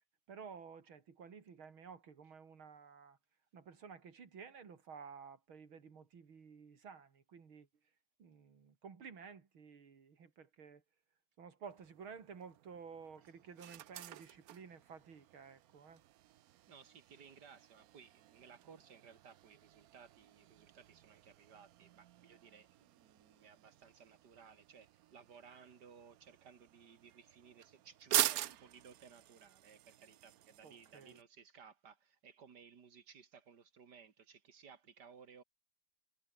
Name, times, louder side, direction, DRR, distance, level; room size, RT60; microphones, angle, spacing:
voice 1, 0.3-3.2 3.5-7.7 8.2-10.8 11.4-16.0 30.6-31.2, right 6 dB, 90° right, 3.4 m, -53 dB
sound 1, 11.6-31.2, right 13 dB, 75° right, 0.8 m, -45 dB
voice 2, 16.7-35.4, right 6 dB, 55° right, 2.3 m, -59 dB
omnidirectional pair, 2.2 m